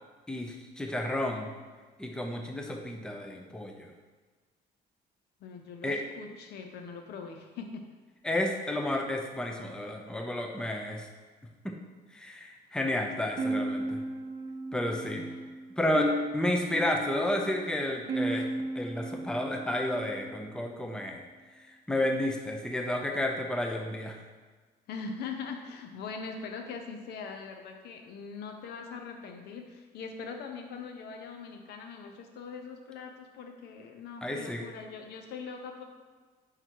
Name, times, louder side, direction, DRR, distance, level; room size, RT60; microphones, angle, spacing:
voice 1, 0.3-1.5 2.0-3.9 5.8-6.0 8.2-11.1 11.6-11.7 12.1-14.0 14.7-15.2 15.8-18.5 18.8-21.2 21.7-24.2 34.2-34.6, left 1 dB, 5° left, 2 dB, 0.6 m, -31 dB
voice 2, 5.4-7.9 12.7-12.8 15.1-15.5 24.9-35.8, left 5 dB, 75° left, 5 dB, 0.8 m, -42 dB
sound 1, 13.4-20.5, right 1 dB, 35° right, 0.9 m, -35 dB
5.6 x 3.9 x 4.6 m, 1.4 s
cardioid pair, 110°, 17 cm